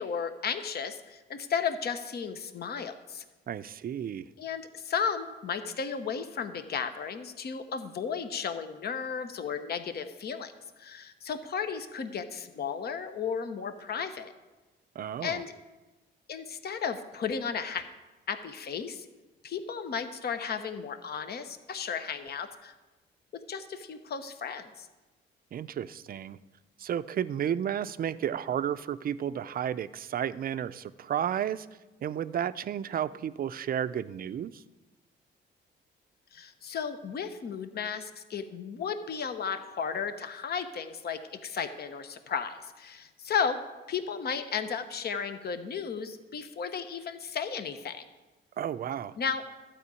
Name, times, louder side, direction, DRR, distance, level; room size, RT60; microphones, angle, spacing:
voice 1, 0.0-3.2 4.4-10.5 10.8-14.3 15.2-15.5 16.3-17.9 18.3-19.1 19.4-22.7 23.5-24.9 36.3-43.6 43.9-48.1 49.2-49.4, left 6 dB, 55° left, 9 dB, 1.0 m, -34 dB
voice 2, 3.5-4.3 15.0-15.4 25.5-26.4 26.8-31.7 32.0-34.6 48.6-49.2, right 9 dB, 45° right, 15 dB, 0.5 m, -32 dB
12.5 x 5.0 x 8.3 m, 1.2 s
cardioid pair, 90°, 20 cm